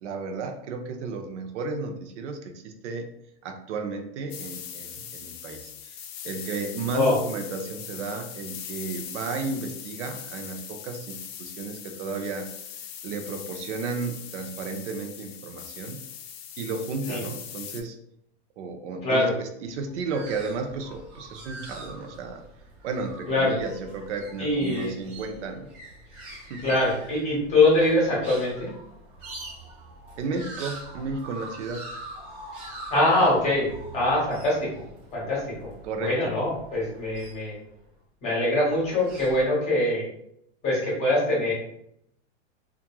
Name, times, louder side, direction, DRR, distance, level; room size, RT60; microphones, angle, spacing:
voice 1, 0.0-3.1 3.4-12.5 13.0-16.0 16.6-18.0 18.6-22.4 22.8-25.7 26.5-26.8 30.2-31.9 35.8-36.3, right 4 dB, 80° right, 5 dB, 0.6 m, -33 dB
sound 1, 4.3-17.8, left 9 dB, 60° left, 0.5 m, -40 dB
sound 2, 19.7-37.9 38.7-39.4, right 2 dB, 45° right, 1.0 m, -44 dB
voice 2, 24.4-24.9 26.6-28.7 32.9-34.7 35.1-35.7 36.0-37.6 38.2-40.0 40.6-41.5, left 2 dB, 20° left, -5 dB, 0.9 m, -23 dB
2.9 x 2.4 x 2.2 m, 0.73 s
supercardioid pair, 165°, 35 cm